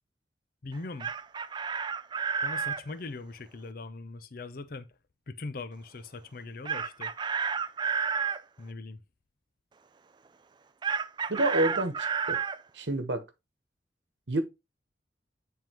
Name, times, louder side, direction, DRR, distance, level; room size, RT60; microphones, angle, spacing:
voice 1, 0.6-1.1 2.4-4.9 5.3-7.1 8.6-9.0, left 3 dB, 55° left, 0.6 m, -40 dB
Chicken rooster, 0.7-2.8 6.7-8.4 10.8-12.6, right 6 dB, 25° right, 0.3 m, -31 dB
voice 2, 11.3-12.4 12.7-13.2 14.3-14.4, right 1 dB, 90° right, 1.1 m, -28 dB
9.1 x 3.6 x 2.9 m
head